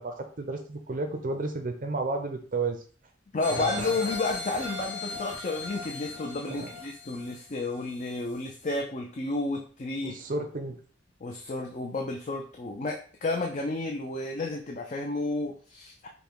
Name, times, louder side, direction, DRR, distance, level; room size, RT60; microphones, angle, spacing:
voice 1, 0.0-2.8 3.5-4.0 6.4-6.7 10.0-10.8, right 3 dB, 45° right, 6 dB, 0.5 m, -32 dB
voice 2, 3.3-10.2 11.2-16.1, left 2 dB, 40° left, 2 dB, 0.5 m, -32 dB
sound 1, 3.4-8.1 8.6-8.7, left 3 dB, 80° left, 1.8 m, -37 dB
5.3 x 2.2 x 4.6 m, 0.42 s
head